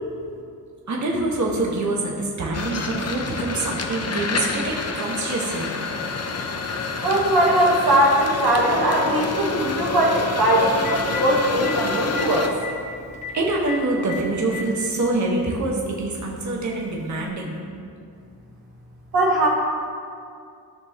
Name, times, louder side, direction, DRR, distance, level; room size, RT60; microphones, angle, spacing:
voice 1, 0.9-5.8 13.3-17.8, right 2 dB, 50° right, -2 dB, 1.5 m, -25 dB
sound 1, 2.5-12.5, left 4 dB, 40° left, 0.7 m, -28 dB
voice 2, 7.0-12.5 19.1-19.5, right 1 dB, 70° right, -3 dB, 1.5 m, -20 dB
Telephone, 8.0-8.1 10.3-10.4 10.7-11.2 11.6-11.8 12.2-12.3 12.5-12.7 13.2-13.3 13.7-13.8 14.1-14.7 15.7-15.8 17.2-17.3, left 5 dB, 20° left, 1.3 m, -32 dB
14.0 x 6.3 x 3.0 m, 2.4 s
cardioid pair, 90°, 38 cm